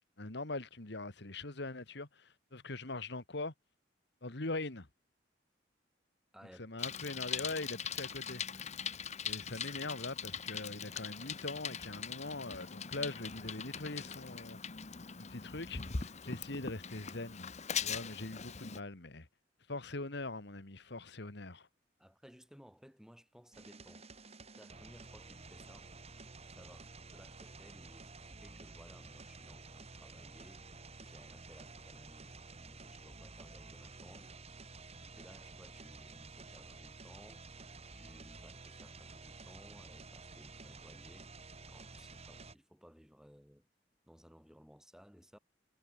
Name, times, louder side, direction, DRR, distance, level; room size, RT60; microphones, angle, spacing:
voice 1, 0.2-3.5 4.2-4.9 6.6-8.7 9.2-14.6 15.2-17.5 17.8-19.3 19.7-21.7, left 2 dB, 65° left, 2.1 m, -42 dB
voice 2, 6.3-6.9 22.0-25.9 26.6-34.4 35.0-37.5 37.9-41.3 41.7-43.7 44.1-45.4, equal, 5° right, 5.5 m, -59 dB
Bicycle, 6.8-18.8, left 7 dB, 40° left, 1.1 m, -41 dB
sound 1, 23.5-42.6, right 3 dB, 35° right, 2.9 m, -52 dB
head